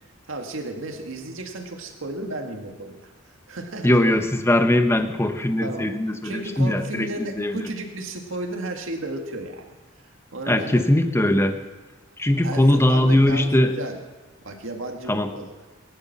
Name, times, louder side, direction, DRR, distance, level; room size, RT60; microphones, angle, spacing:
voice 1, 0.3-4.0 5.6-5.9 6.2-9.8 10.3-10.9 12.4-14.0 14.4-15.5, right 2 dB, 75° right, 3 dB, 2.0 m, -34 dB
voice 2, 3.8-7.6 10.5-11.6 12.2-13.7 15.1-15.3, left 1 dB, 15° left, 7 dB, 0.9 m, -20 dB
20.5 x 11.0 x 6.0 m, 1.3 s
head